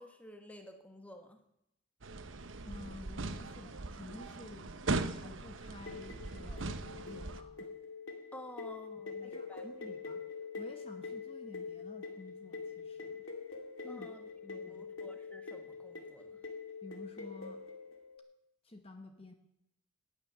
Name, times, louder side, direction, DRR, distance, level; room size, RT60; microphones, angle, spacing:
voice 1, 0.0-1.4 8.3-9.6 13.8-14.3 14.5-16.4, left 1 dB, 5° left, 5 dB, 1.3 m, -52 dB
sound 1, 2.0-7.4, right 3 dB, 70° right, 1.0 m, -39 dB
voice 2, 2.6-7.7 9.0-13.2 13.8-14.1 14.4-14.9 16.8-17.6 18.6-19.3, left 2 dB, 30° left, 6 dB, 1.2 m, -52 dB
sound 2, 5.9-18.2, left 4 dB, 80° left, 2.0 m, -45 dB
18.5 x 9.4 x 6.8 m, 0.80 s
head